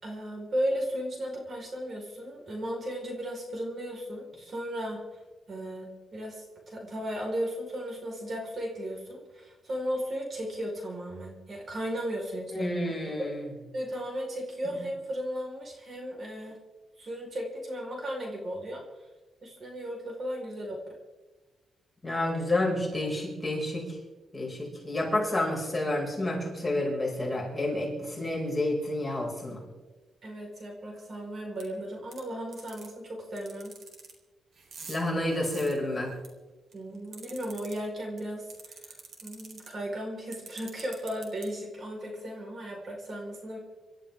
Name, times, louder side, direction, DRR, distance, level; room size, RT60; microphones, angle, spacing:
voice 1, 0.0-5.0 5.5-12.7 13.1-13.2 13.7-16.6 17.0-18.8 19.4-20.8 30.2-33.7 36.7-39.0 39.2-43.6, equal, 45° right, -1 dB, 4.6 m, -35 dB
voice 2, 12.5-13.5 22.0-23.9 24.3-29.6 34.9-36.1, left 1 dB, 10° left, -3 dB, 5.8 m, -29 dB
sound 1, 31.6-31.7 32.1-32.2 32.5-32.9 33.4-34.1 34.6-36.3 36.7-37.7 38.2-38.3 38.5-39.7 40.3-41.4, right 5 dB, 60° right, 4.0 m, -45 dB
27.0 x 13.5 x 3.7 m, 1.2 s
cardioid pair, 125°, 0 cm